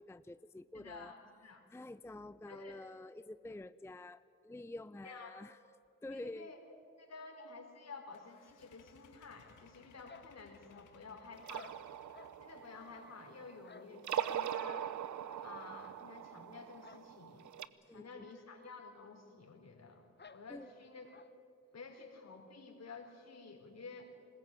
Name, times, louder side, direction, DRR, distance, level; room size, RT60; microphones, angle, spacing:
voice 1, 0.0-1.2 1.7-5.6 6.0-6.5 17.8-18.3 20.5-20.7, left 2 dB, 10° left, 14 dB, 0.5 m, -48 dB
voice 2, 0.7-1.6 2.5-2.8 5.0-5.4 6.1-6.6 7.0-11.8 12.4-14.9 15.4-17.5 17.9-21.1 21.7-24.1, left 4 dB, 60° left, 3 dB, 4.4 m, -52 dB
sound 1, 8.1-13.7, left 7 dB, 90° left, 1.7 m, -66 dB
sound 2, 10.0-11.1 11.5-12.4 12.9-14.5 14.7-15.0 15.3-15.5 15.8-15.9 16.8-17.1 17.3-17.4 17.8-17.9 18.8-18.9 19.2-19.3 20.2-20.4 21.1-21.3, left 5 dB, 35° left, 1.2 m, -57 dB
sound 3, 11.3-13.5 13.9-17.7, right 10 dB, 75° right, 0.8 m, -41 dB
21.0 x 19.5 x 9.1 m, 2.5 s
cardioid pair, 60°, 30 cm